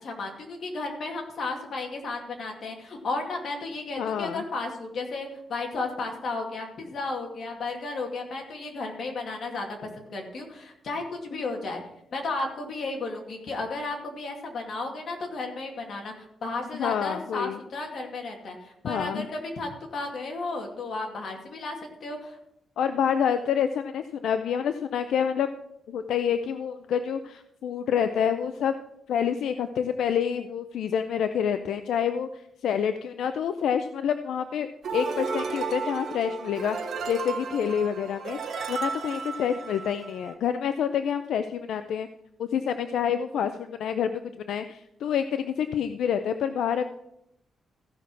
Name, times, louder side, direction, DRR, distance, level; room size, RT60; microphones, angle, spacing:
voice 1, 0.0-11.8 12.1-22.4, left 3 dB, 55° left, 1 dB, 2.3 m, -33 dB
voice 2, 4.0-4.4 16.8-17.6 18.9-19.3 22.8-25.5 25.9-28.8 29.1-34.7 34.9-42.1 42.4-46.8, left 8 dB, 85° left, 9 dB, 0.5 m, -27 dB
sound 1, 34.8-40.3, right 5 dB, 65° right, 1.3 m, -34 dB
15.0 x 5.9 x 4.7 m, 0.78 s
cardioid pair, 140°, 0 cm